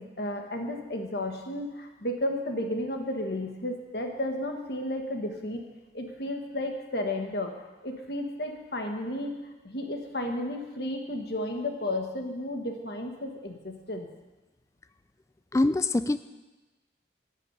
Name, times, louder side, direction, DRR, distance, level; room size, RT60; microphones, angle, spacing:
voice 1, 0.0-5.6 5.9-7.5 7.8-9.4 9.6-14.1, left 1 dB, 55° left, 3 dB, 1.4 m, -33 dB
voice 2, 15.5-16.2, left 2 dB, 15° left, 13 dB, 0.3 m, -24 dB
10.0 x 7.2 x 8.0 m, 1.1 s
head